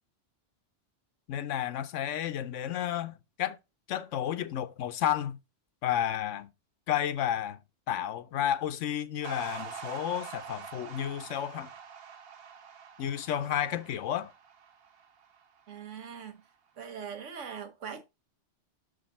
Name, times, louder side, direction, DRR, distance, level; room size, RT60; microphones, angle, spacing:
voice 1, 1.3-3.6 3.9-5.4 5.8-6.5 6.9-7.6 7.9-11.7 13.0-14.3, left 10 dB, 90° left, 1.0 m, -31 dB
sound 1, 9.2-15.7, right 7 dB, 55° right, 1.0 m, -45 dB
voice 2, 15.7-16.4 16.8-18.1, right 7 dB, 90° right, 1.4 m, -41 dB
6.3 x 5.2 x 4.1 m
omnidirectional pair, 1.2 m